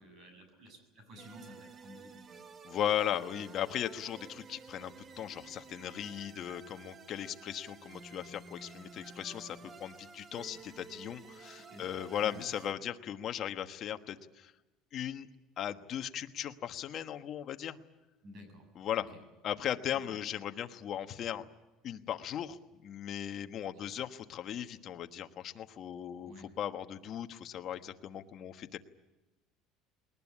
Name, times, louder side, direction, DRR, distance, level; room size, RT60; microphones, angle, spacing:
voice 1, 0.0-2.4 11.6-11.9 12.2-12.5 18.2-18.7 19.1-19.2 20.1-20.2 23.6-23.9 26.2-26.5, equal, 45° right, 7 dB, 7.3 m, -53 dB
sound 1, 1.2-12.7, right 4 dB, 25° right, 0.9 m, -52 dB
voice 2, 2.6-14.5 14.9-15.3 15.6-17.8 18.7-19.1 19.4-21.4 21.8-28.8, left 10 dB, 40° left, 8 dB, 1.3 m, -37 dB
21.5 x 19.5 x 9.9 m, 1.0 s
cardioid pair, 150°, 0 cm